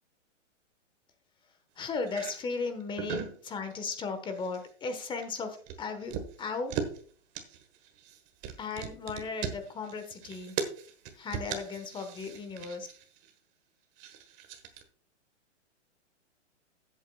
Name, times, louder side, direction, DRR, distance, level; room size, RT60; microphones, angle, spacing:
voice 1, 1.8-6.7 8.6-10.6 11.2-12.9, left 4 dB, 15° left, 7 dB, 1.2 m, -36 dB
sound 1, 2.1-2.3 2.8-3.4 3.7-4.0 4.3-4.7 5.0-7.0 7.3-13.3 14.0-14.8, right 8 dB, 30° right, 1.4 m, -39 dB
15.0 x 8.4 x 2.3 m, 0.44 s
hypercardioid pair, 140°, 37 cm